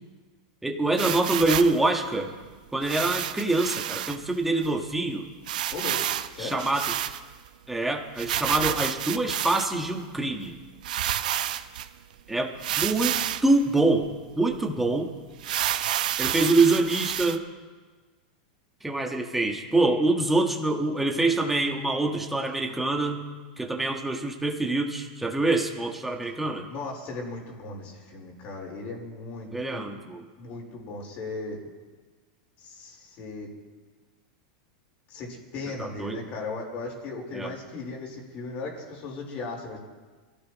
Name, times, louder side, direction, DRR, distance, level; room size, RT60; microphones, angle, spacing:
voice 1, 0.6-2.3 2.7-5.3 6.4-6.9 7.7-10.5 12.3-14.1 14.4-15.1 16.2-17.4 18.8-23.2 23.6-26.7 29.5-30.2 35.8-36.2 37.3-37.5, right 2 dB, 5° right, 2 dB, 1.5 m, -25 dB
sound 1, 1.0-1.8 2.8-4.2 4.6-4.7 4.9-5.0 5.5-7.5 8.2-9.9 10.5-10.6 10.8-11.9 12.6-13.5 14.0-14.1 14.5-14.6 15.4-17.4, right 11 dB, 80° right, 0.8 m, -29 dB
voice 2, 5.7-6.6 26.7-29.9 30.4-31.6 32.6-33.5 35.1-39.8, left 3 dB, 35° left, 0 dB, 4.3 m, -37 dB
27.0 x 15.5 x 3.1 m, 1.4 s
supercardioid pair, 160°, 4 cm